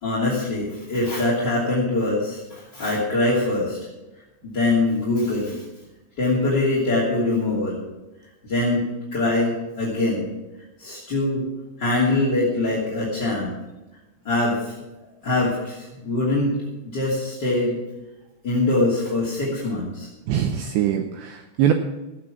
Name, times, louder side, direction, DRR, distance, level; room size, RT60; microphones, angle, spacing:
voice 1, 0.0-3.8 4.4-5.6 6.2-7.8 8.4-10.3 10.8-11.4 11.8-13.5 14.2-14.7 15.2-16.6 16.9-17.8 18.4-20.1, left 2 dB, 30° left, -7 dB, 2.3 m, -23 dB
voice 2, 20.3-21.7, right 10 dB, 90° right, 6 dB, 2.5 m, -22 dB
14.5 x 8.9 x 6.0 m, 1.1 s
omnidirectional pair, 6.0 m